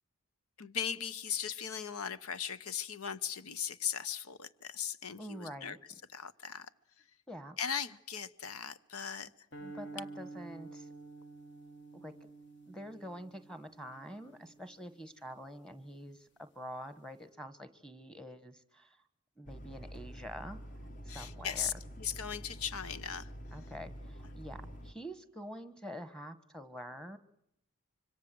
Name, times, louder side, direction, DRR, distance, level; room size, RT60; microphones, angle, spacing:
voice 1, 0.6-5.8 6.1-6.7 7.6-9.3 21.1-23.3, left 8 dB, 85° left, 0.9 m, -38 dB
voice 2, 5.2-5.8 7.3-7.6 9.6-10.9 11.9-12.1 12.7-19.0 19.4-20.6 21.0-21.7 23.5-27.2, equal, 5° left, 1.3 m, -46 dB
sound 1, 9.5-15.9, right 3 dB, 50° left, 1.9 m, -50 dB
sound 2, 19.5-24.9, equal, 35° left, 1.4 m, -47 dB
25.5 x 24.5 x 7.7 m
head